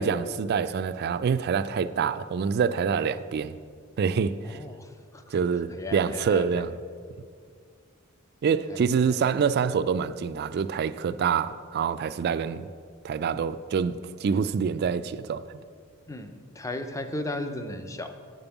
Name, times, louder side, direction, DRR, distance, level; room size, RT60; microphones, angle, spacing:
voice 1, 0.0-3.5 4.0-4.6 5.3-6.7 8.4-12.7 13.0-15.4, right 6 dB, 50° right, 0.3 m, -26 dB
voice 2, 4.4-6.7 8.7-8.8 9.1-9.2 16.1-18.2, left 1 dB, 15° left, 0.5 m, -36 dB
7.5 x 5.3 x 7.0 m
head